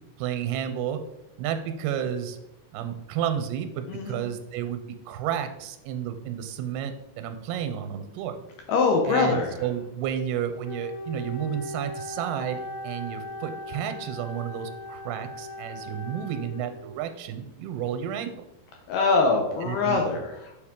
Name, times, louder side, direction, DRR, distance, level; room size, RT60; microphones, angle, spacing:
voice 1, 0.2-1.0 1.4-2.4 2.7-4.8 5.1-8.4 9.1-18.3 19.7-20.0, right 9 dB, 85° right, 9 dB, 2.5 m, -31 dB
voice 2, 3.9-4.2 8.7-9.6 18.9-20.5, left 4 dB, 75° left, 1 dB, 2.1 m, -23 dB
Wind instrument woodwind instrument, 10.6-17.0, left 1 dB, 60° left, 1.9 m, -38 dB
6.8 x 4.8 x 3.7 m, 0.88 s
omnidirectional pair, 4.5 m